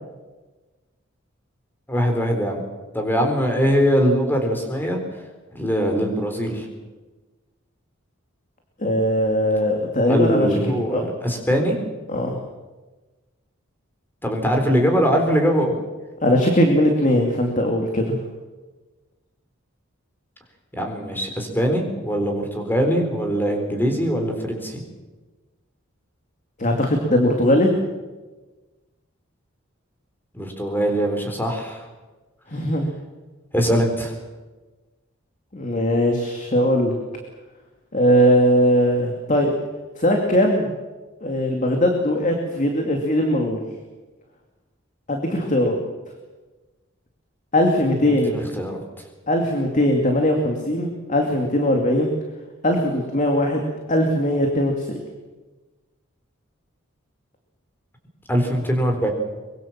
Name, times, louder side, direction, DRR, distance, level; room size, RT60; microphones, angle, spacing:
voice 1, 1.9-2.6 2.9-5.0 5.5-6.7 10.1-11.8 14.2-15.8 20.7-24.8 30.3-31.9 33.5-34.1 48.0-48.8 58.3-59.1, equal, 10° left, 3 dB, 4.1 m, -22 dB
voice 2, 8.8-11.0 12.1-12.4 16.2-18.2 26.6-27.7 32.5-32.9 35.5-36.9 37.9-39.5 40.0-40.7 41.2-43.6 45.1-45.8 47.5-48.4 49.3-52.1 52.6-55.0, equal, 40° left, 3 dB, 2.5 m, -20 dB
24.0 x 22.5 x 7.4 m, 1.2 s
head